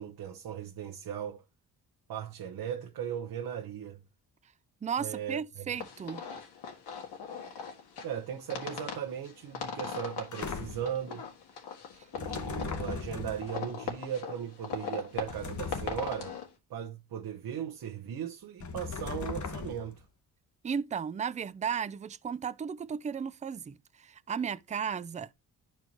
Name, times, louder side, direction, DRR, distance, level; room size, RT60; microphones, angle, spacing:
voice 1, 0.0-1.4 2.1-4.0 5.0-5.8 8.0-11.3 12.1-16.4 16.7-20.0, right 9 dB, 65° right, 0.9 m, -37 dB
voice 2, 4.8-6.2 20.6-25.3, right 7 dB, 20° right, 0.3 m, -35 dB
sound 1, 5.8-16.5, left 6 dB, 85° left, 1.9 m, -40 dB
sound 2, 10.3-11.0 12.2-13.6 15.3-16.3 18.6-20.0, left 5 dB, 50° left, 1.0 m, -38 dB
11.0 x 4.5 x 2.9 m
cardioid pair, 90°, 39 cm